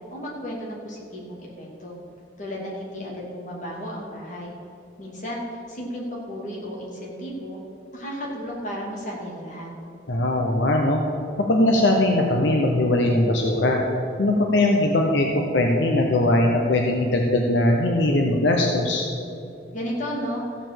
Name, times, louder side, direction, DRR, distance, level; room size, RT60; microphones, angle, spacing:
voice 1, 0.1-2.0 2.4-4.5 5.0-5.4 5.7-7.6 7.9-9.7 19.7-20.4, equal, 40° left, -4 dB, 2.6 m, -33 dB
voice 2, 10.1-11.0 11.5-13.8 14.2-19.0, left 1 dB, 75° left, 1 dB, 0.9 m, -20 dB
14.5 x 5.1 x 7.6 m, 2.7 s
head